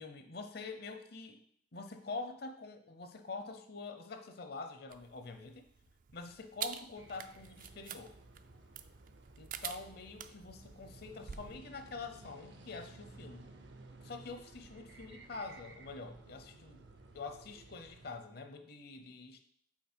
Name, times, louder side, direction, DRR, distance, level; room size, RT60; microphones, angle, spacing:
voice 1, 0.0-1.4 1.7-5.7 6.1-8.1 9.4-13.5 14.0-16.8 17.1-19.4, left 3 dB, 60° left, 7 dB, 0.7 m, -46 dB
sound 1, 4.9-11.6, right 9 dB, 45° right, 0.3 m, -47 dB
sound 2, 6.9-18.2, right 2 dB, 65° right, 0.7 m, -56 dB
6.0 x 4.4 x 4.4 m, 0.67 s
head